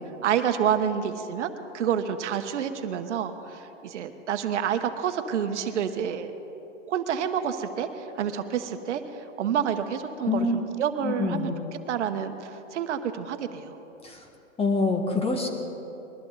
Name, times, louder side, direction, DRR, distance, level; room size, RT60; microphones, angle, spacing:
voice 1, 0.2-1.5 1.7-6.3 6.9-9.0 9.4-10.5 10.8-11.5 11.9-13.8, right 8 dB, 70° right, 8 dB, 1.2 m, -28 dB
voice 2, 10.2-10.5 11.0-11.6 14.0-14.2 14.6-15.5, left 3 dB, 15° left, 3 dB, 1.7 m, -26 dB
21.5 x 14.0 x 4.1 m, 3.0 s
hypercardioid pair, 125°, 36 cm